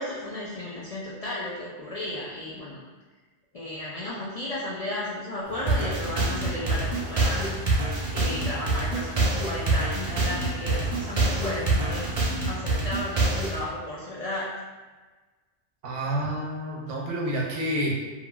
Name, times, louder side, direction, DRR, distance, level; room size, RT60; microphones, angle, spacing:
voice 1, 0.0-2.8 3.5-7.6 8.1-12.1 12.5-14.5, left 1 dB, 70° left, -6 dB, 0.3 m, -34 dB
sound 1, 5.4-12.2, equal, 45° left, 1.3 m, -42 dB
sound 2, 5.7-13.6, right 2 dB, 45° right, 0.5 m, -25 dB
voice 2, 15.8-18.0, right 1 dB, 85° right, -2 dB, 1.0 m, -29 dB
3.1 x 2.4 x 2.2 m, 1.3 s
omnidirectional pair, 1.2 m